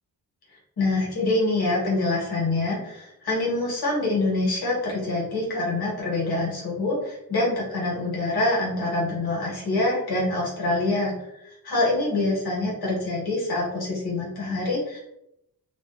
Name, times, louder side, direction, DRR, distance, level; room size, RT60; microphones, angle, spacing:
voice 1, 0.8-15.0, left 2 dB, 75° left, -4 dB, 1.1 m, -25 dB
2.4 x 2.2 x 2.3 m, 0.81 s
wide cardioid pair, 85°, 38 cm